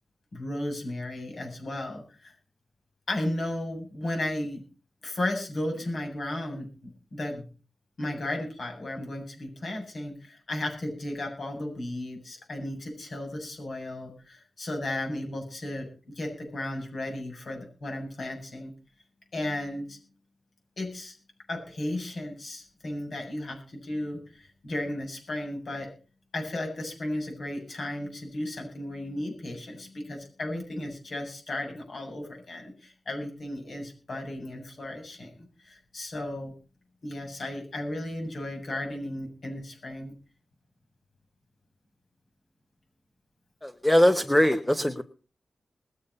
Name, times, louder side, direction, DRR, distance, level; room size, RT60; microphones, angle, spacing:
voice 1, 0.3-2.3 3.1-4.6 5.0-7.5 8.0-15.9 16.2-18.7 19.3-20.0 20.8-21.1 21.5-25.9 26.3-36.5 37.0-40.1, left 1 dB, 60° left, 2 dB, 7.8 m, -34 dB
voice 2, 43.6-45.0, left 1 dB, 10° left, 7 dB, 1.0 m, -21 dB
21.0 x 8.3 x 5.5 m, 0.37 s
wide cardioid pair, 130°, 0 cm